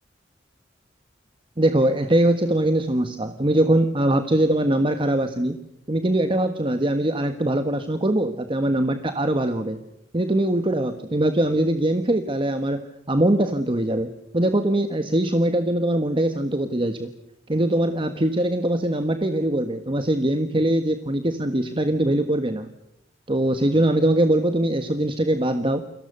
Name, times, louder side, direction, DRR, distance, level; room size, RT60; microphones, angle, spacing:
voice 1, 1.6-5.6 5.9-9.8 10.1-17.1 17.5-22.7 23.3-25.8, right 1 dB, 30° right, 8 dB, 1.4 m, -22 dB
29.5 x 23.5 x 6.7 m, 0.84 s
head